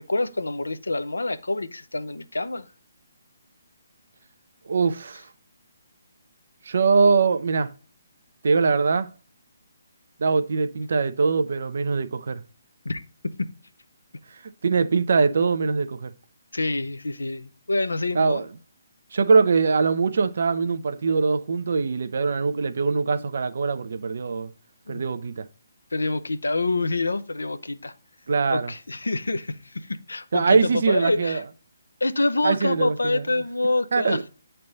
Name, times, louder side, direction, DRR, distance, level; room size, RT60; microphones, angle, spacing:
voice 1, 0.0-2.7 12.8-13.0 16.5-18.4 24.9-25.0 25.9-27.9 28.5-31.4 32.0-34.2, left 2 dB, 75° left, 0.5 m, -26 dB
voice 2, 4.7-5.3 6.7-7.7 8.4-9.1 10.2-12.4 14.6-16.1 18.1-18.5 19.1-24.5 24.9-25.5 28.3-28.7 30.3-31.4 32.4-33.2 33.9-34.2, right 4 dB, 55° right, 0.5 m, -22 dB
9.3 x 3.4 x 3.8 m
figure-of-eight pair, 140°, 0 cm